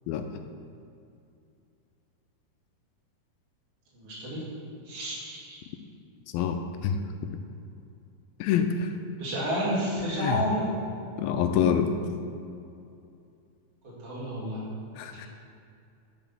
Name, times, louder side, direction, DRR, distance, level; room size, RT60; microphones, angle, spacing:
voice 1, 3.9-4.4 4.9-5.6 9.2-10.7 13.8-14.6, equal, 40° right, -8 dB, 3.5 m, -30 dB
voice 2, 6.3-7.0 8.4-8.9 10.2-10.4 11.2-11.9 15.0-15.3, left 8 dB, 80° left, 6 dB, 2.3 m, -26 dB
11.0 x 5.4 x 7.1 m, 2.5 s
omnidirectional pair, 4.5 m